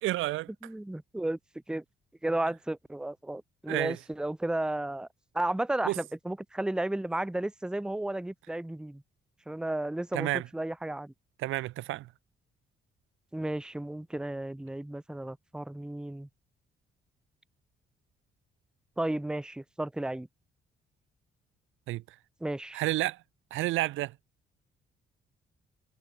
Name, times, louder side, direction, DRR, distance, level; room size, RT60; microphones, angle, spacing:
voice 1, 0.0-0.5 3.7-4.0 5.8-6.0 10.1-10.4 11.4-12.1 21.9-22.0 22.7-23.2 23.5-24.1, right 17 dB, 80° right, 0.5 m, -30 dB
voice 2, 0.6-1.4 1.7-1.8 2.2-5.1 5.3-9.0 9.5-11.1 13.3-16.3 19.0-20.3 22.4-22.8, right 1 dB, 5° right, 0.6 m, -33 dB
cardioid pair, 90°, 20 cm